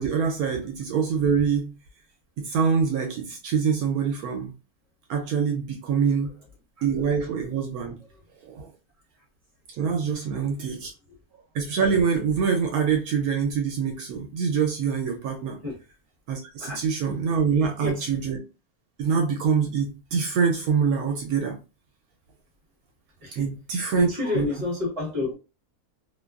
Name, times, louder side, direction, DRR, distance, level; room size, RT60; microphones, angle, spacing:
voice 1, 0.0-1.7 2.4-4.5 5.1-6.3 6.8-8.0 8.4-8.7 9.8-10.9 11.5-15.6 16.3-18.4 19.0-21.6 23.3-24.1 24.3-24.5, right 6 dB, 75° right, 1.0 m, -25 dB
voice 2, 17.5-18.1 23.2-23.5 23.9-25.3, left 3 dB, 25° right, 1.0 m, -30 dB
2.7 x 2.2 x 2.3 m
omnidirectional pair, 1.6 m